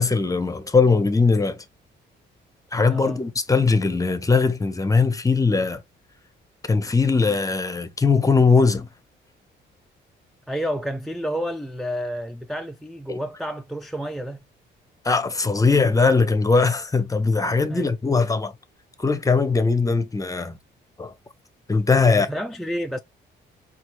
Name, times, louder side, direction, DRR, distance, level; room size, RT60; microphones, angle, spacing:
voice 1, 0.0-1.6 2.7-5.8 6.7-8.9 13.1-13.2 15.0-18.5 19.0-20.5 21.0-21.1 21.7-22.3, left 4 dB, 15° left, 0.7 m, -20 dB
voice 2, 2.9-3.2 10.5-14.4 17.7-17.9 22.0-23.0, equal, ahead, 0.3 m, -30 dB
4.3 x 2.4 x 3.1 m
cardioid pair, 90°, 20 cm